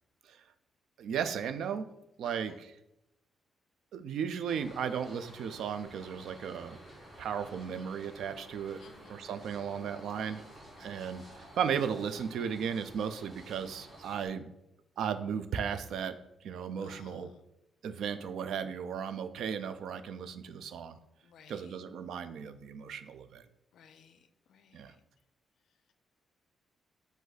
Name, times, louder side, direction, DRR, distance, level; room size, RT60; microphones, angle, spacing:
voice 1, 1.0-1.9 2.2-2.8 3.9-6.8 7.2-8.8 9.1-10.4 10.8-14.5 15.0-16.1 16.4-17.3 17.8-21.0 21.5-23.4 24.7-24.9, right 7 dB, 70° right, 11 dB, 0.3 m, -35 dB
voice 2, 2.2-2.6 8.8-9.3 10.8-11.1 16.8-17.4 21.2-21.7 23.7-24.2 24.5-25.0, left 6 dB, 65° left, 9 dB, 0.4 m, -59 dB
sound 1, 4.5-14.3, equal, 25° right, 1.3 m, -52 dB
5.0 x 2.6 x 3.9 m, 0.86 s
wide cardioid pair, 170°, 0 cm